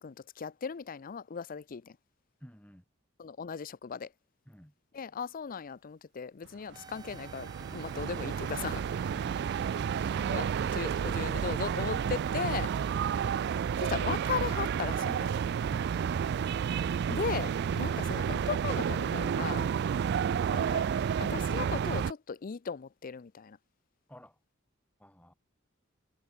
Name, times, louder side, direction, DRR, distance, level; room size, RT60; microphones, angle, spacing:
voice 1, 0.0-2.0 3.2-4.1 4.9-8.8 10.2-12.7 13.8-15.3 17.1-19.7 20.5-20.9 21.2-23.6, left 6 dB, 45° left, 0.5 m, -37 dB
voice 2, 2.4-2.8 4.5-4.7 6.7-6.9 9.0-9.7 15.7-16.6 24.1-24.4 25.0-25.3, equal, 5° left, 7.8 m, -53 dB
sound 1, 6.7-21.2, right 4 dB, 20° right, 2.2 m, -55 dB
sound 2, 6.7-22.1, right 7 dB, 55° right, 0.3 m, -31 dB
head